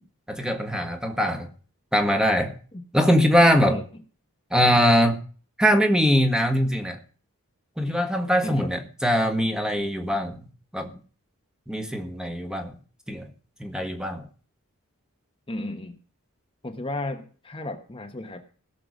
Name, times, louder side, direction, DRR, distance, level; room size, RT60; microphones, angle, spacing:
voice 1, 0.3-1.5 1.9-2.6 2.9-3.8 4.5-5.2 5.6-7.0 7.8-10.5 10.7-10.9 11.7-12.7 13.1-13.3 13.6-14.3, equal, 5° right, 5 dB, 1.6 m, -22 dB
voice 2, 3.5-3.8 8.4-8.7 15.5-16.0 16.6-18.4, left 2 dB, 25° left, 4 dB, 1.2 m, -34 dB
17.0 x 6.8 x 6.5 m, 0.39 s
head